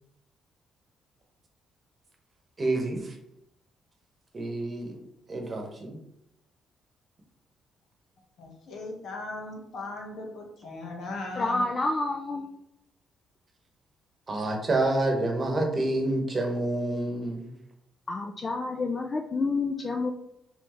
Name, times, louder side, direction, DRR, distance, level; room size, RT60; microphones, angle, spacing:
voice 1, 2.6-3.2 4.3-5.0 5.3-6.0 14.3-17.5, right 2 dB, 35° right, 2 dB, 1.2 m, -28 dB
voice 2, 8.4-11.7, left 2 dB, 65° left, 1 dB, 1.2 m, -38 dB
voice 3, 11.4-12.5 18.1-20.1, left 3 dB, 35° left, 2 dB, 0.4 m, -29 dB
4.3 x 3.6 x 3.2 m, 0.80 s
cardioid pair, 90°, 0 cm